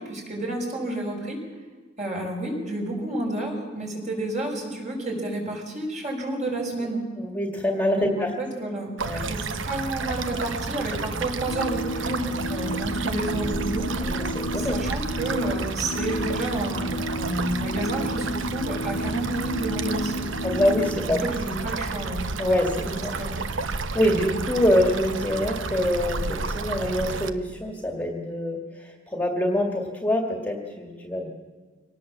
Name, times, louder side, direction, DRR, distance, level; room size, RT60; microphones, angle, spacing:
voice 1, 0.0-1.4 2.0-7.0 7.9-9.0 9.3-13.9 14.6-20.3 21.1-22.2 22.8-23.4, right 1 dB, 40° right, 0 dB, 6.1 m, -30 dB
voice 2, 7.2-8.3 9.0-9.2 14.0-14.7 20.4-21.2 22.4-23.1 23.7-31.3, left 1 dB, 10° left, 2 dB, 2.1 m, -25 dB
sound 1, 9.0-27.3, right 4 dB, 80° right, 1.0 m, -31 dB
sound 2, 11.5-21.1, left 1 dB, 55° left, 0.8 m, -32 dB
24.5 x 18.5 x 7.4 m, 1.4 s
head